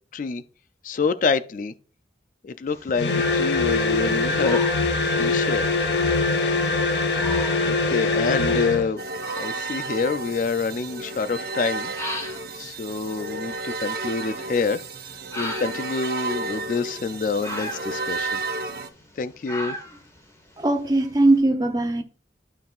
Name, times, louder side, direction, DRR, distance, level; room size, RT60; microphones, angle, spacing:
voice 1, 0.8-1.7 2.4-4.6 5.2-5.7 7.6-9.0 9.4-11.9 12.5-14.8 15.4-18.4 19.2-19.8, left 4 dB, 45° left, 0.4 m, -27 dB
sound 1, 2.7-21.4, left 1 dB, 15° left, 2.0 m, -40 dB
sound 2, 3.0-8.9, left 3 dB, 70° left, 0.9 m, -22 dB
sound 3, 9.0-18.9, right 3 dB, 60° right, 0.8 m, -32 dB
voice 2, 20.6-22.0, right 2 dB, 20° right, 0.7 m, -20 dB
12.0 x 5.4 x 2.4 m
head